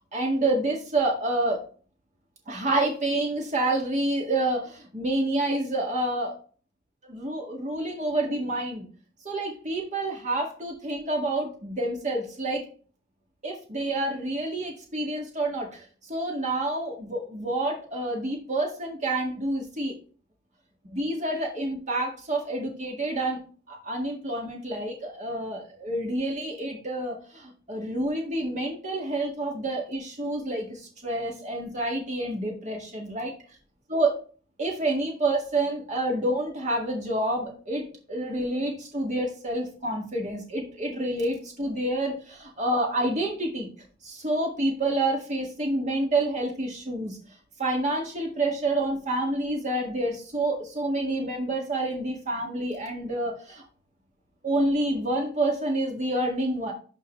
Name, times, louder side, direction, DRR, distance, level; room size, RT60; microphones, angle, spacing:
voice 1, 0.1-1.6 2.5-6.4 7.1-8.9 9.2-12.6 13.4-19.9 20.9-23.4 23.7-33.3 33.9-34.2 34.6-37.8 38.1-43.7 44.0-47.2 47.6-53.6 54.4-56.7, right 1 dB, 40° right, -1 dB, 1.9 m, -28 dB
12.0 x 4.5 x 3.1 m, 0.40 s
head